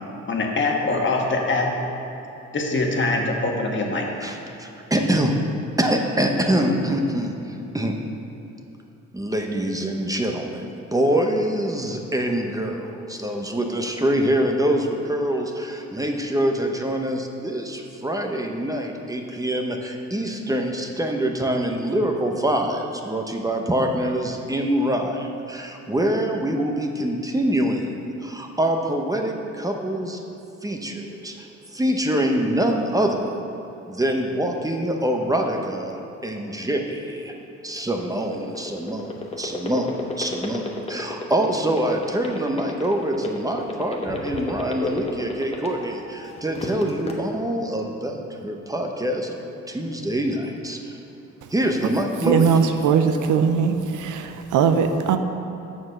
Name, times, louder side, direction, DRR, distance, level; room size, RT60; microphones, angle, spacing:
voice 1, 0.3-1.7 2.5-4.1, left 3 dB, 40° left, 0 dB, 1.5 m, -23 dB
voice 2, 4.2-5.3 5.8-8.0 9.1-30.2 30.6-31.5 31.7-33.4 33.9-37.3 37.6-50.9 51.5-52.5 52.8-52.9, right 1 dB, 10° right, 2 dB, 0.9 m, -25 dB
sound 1, 37.8-46.0 46.4-47.1, left 3 dB, 20° left, 1.2 m, -31 dB
voice 3, 52.3-55.2, right 6 dB, 80° right, 8 dB, 0.7 m, -20 dB
6.9 x 6.3 x 6.5 m, 2.9 s
cardioid pair, 90°, 30 cm